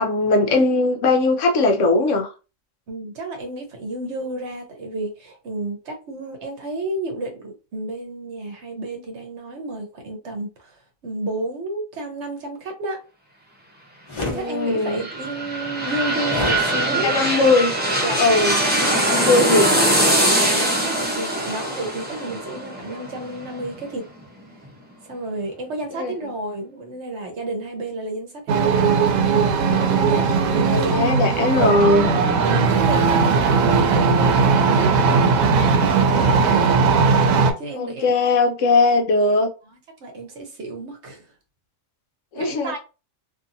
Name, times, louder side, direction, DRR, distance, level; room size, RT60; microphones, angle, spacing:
voice 1, 0.0-2.3 14.3-15.1 16.9-17.7 18.2-18.6 18.9-19.7 26.0-26.1 30.6-32.1 37.7-39.5 42.3-42.8, left 2 dB, 70° left, 0.9 m, -19 dB
voice 2, 2.9-13.0 14.2-17.1 18.0-18.5 20.5-24.1 25.0-29.0 29.6-31.9 32.4-36.7 37.6-38.1 40.0-41.3 42.4-42.8, right 2 dB, 60° right, 1.0 m, -32 dB
sound 1, 14.1-14.4 16.3-16.6, left 2 dB, 45° left, 0.4 m, -27 dB
sound 2, 14.6-24.2 24.6-24.7, right 1 dB, 10° right, 0.6 m, -22 dB
sound 3, 28.5-37.5, right 5 dB, 85° right, 1.0 m, -18 dB
2.7 x 2.6 x 2.5 m
omnidirectional pair, 1.4 m